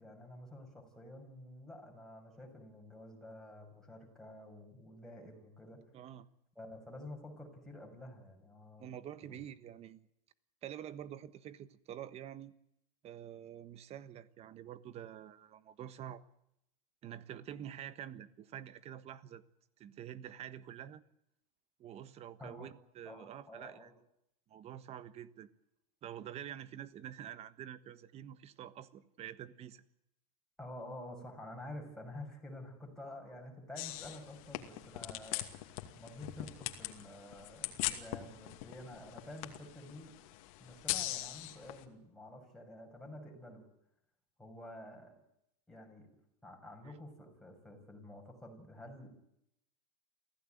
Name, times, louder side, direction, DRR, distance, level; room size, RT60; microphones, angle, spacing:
voice 1, 0.0-5.8 6.5-8.9 9.2-9.4 22.4-22.7 23.0-23.9 30.6-40.2 40.6-43.6 44.4-45.1 45.7-46.1 46.4-49.1, left 1 dB, ahead, 0 dB, 6.5 m, -50 dB
voice 2, 5.9-6.3 8.8-10.1 10.6-12.5 13.0-16.2 17.0-19.4 19.8-21.0 21.8-23.9 24.5-25.5 26.0-29.8 46.8-47.0, right 10 dB, 35° right, 14 dB, 1.4 m, -47 dB
sound 1, 33.8-41.8, left 16 dB, 65° left, 2.5 m, -41 dB
24.5 x 16.0 x 9.3 m, 0.78 s
supercardioid pair, 140°, 19 cm